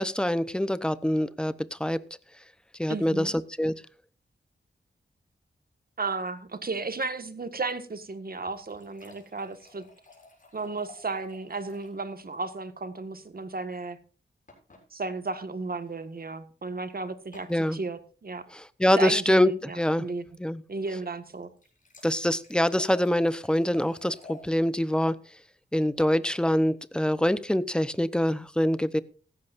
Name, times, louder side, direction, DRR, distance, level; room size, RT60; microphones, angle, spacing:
voice 1, 0.0-2.0 2.8-3.3 3.6-3.7 17.5-17.8 18.5-20.1 20.4-20.6 22.0-25.2 25.7-29.0, left 1 dB, 5° left, 15 dB, 0.8 m, -25 dB
voice 2, 2.9-3.3 6.0-9.8 10.5-14.0 14.9-18.5 19.0-20.3 20.7-21.5, right 3 dB, 50° right, 9 dB, 1.7 m, -34 dB
sound 1, 8.3-12.0 12.3-12.4 12.7-12.8 14.5-14.8 15.8-16.0 17.3-17.6 21.4-24.5 25.9-26.4, left 3 dB, 45° left, 7.5 m, -52 dB
16.5 x 14.5 x 2.6 m, 0.37 s
wide cardioid pair, 95°, 20 cm